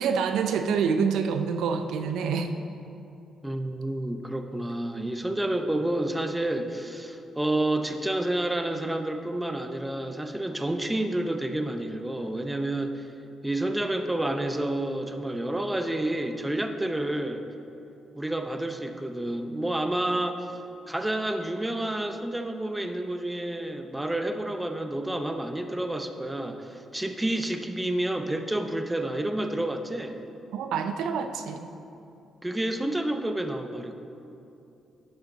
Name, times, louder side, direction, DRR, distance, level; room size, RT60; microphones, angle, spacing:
voice 1, 0.0-2.5 30.5-31.7, right 6 dB, 80° right, 7 dB, 0.4 m, -27 dB
voice 2, 3.4-13.1 13.4-17.4 18.1-20.5 20.9-30.2 32.4-33.9, right 1 dB, 10° right, 6 dB, 0.6 m, -29 dB
11.0 x 5.6 x 3.9 m, 2.8 s
cardioid pair, 90°, 0 cm